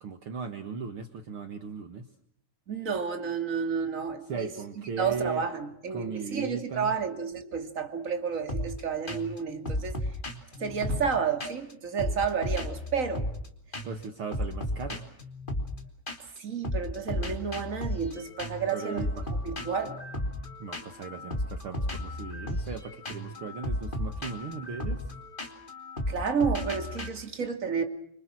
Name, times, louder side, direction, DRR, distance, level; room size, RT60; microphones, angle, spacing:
voice 1, 0.0-2.0 4.3-5.4 5.9-6.9 13.8-15.0 18.7-19.3 20.6-25.0, right 5 dB, 60° right, 7 dB, 1.4 m, -37 dB
voice 2, 2.7-4.6 4.8-10.0 10.6-13.3 16.4-20.2 26.1-27.8, right 6 dB, 25° right, 6 dB, 2.1 m, -31 dB
sound 1, 8.5-8.8 9.1-9.4 9.6-11.7 12.0-13.5 13.7-14.0 14.3-16.4 16.6-27.1, left 1 dB, 15° left, 2.3 m, -34 dB
28.5 x 26.0 x 6.2 m, 0.69 s
omnidirectional pair, 4.9 m